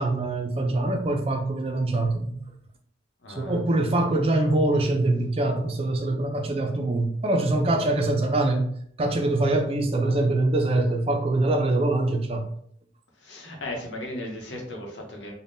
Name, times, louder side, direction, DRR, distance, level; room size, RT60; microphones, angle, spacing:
voice 1, 0.0-2.4 3.3-8.7 9.0-12.5, right 2 dB, 30° right, 0.4 m, -24 dB
voice 2, 3.2-3.6 13.2-15.3, left 1 dB, 85° left, 0.8 m, -36 dB
3.4 x 2.1 x 2.6 m
head